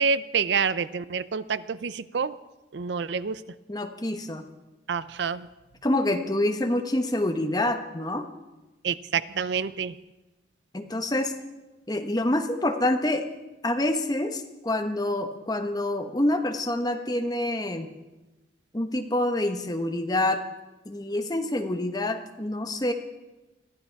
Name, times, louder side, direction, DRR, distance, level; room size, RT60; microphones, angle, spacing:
voice 1, 0.0-2.4 2.7-3.4 4.9-5.5 8.8-10.0, right 6 dB, 65° right, 16 dB, 0.5 m, -27 dB
voice 2, 3.7-4.4 5.8-8.3 10.7-11.3 11.9-13.3 13.6-17.9 18.7-20.4 20.8-22.9, left 1 dB, 20° left, 6 dB, 1.2 m, -27 dB
22.0 x 14.0 x 4.7 m, 1.1 s
head